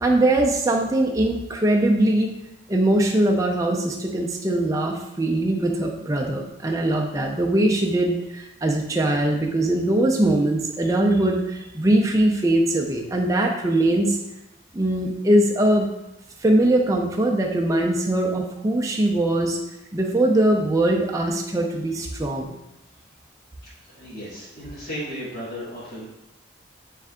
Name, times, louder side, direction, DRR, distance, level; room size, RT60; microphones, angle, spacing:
voice 1, 0.0-2.3 2.7-14.2 14.7-15.9 16.4-19.6 19.9-22.6, right 1 dB, 15° right, 0 dB, 0.4 m, -21 dB
voice 2, 23.8-26.1, equal, 35° left, -11 dB, 1.5 m, -35 dB
3.6 x 3.3 x 3.5 m, 0.87 s
head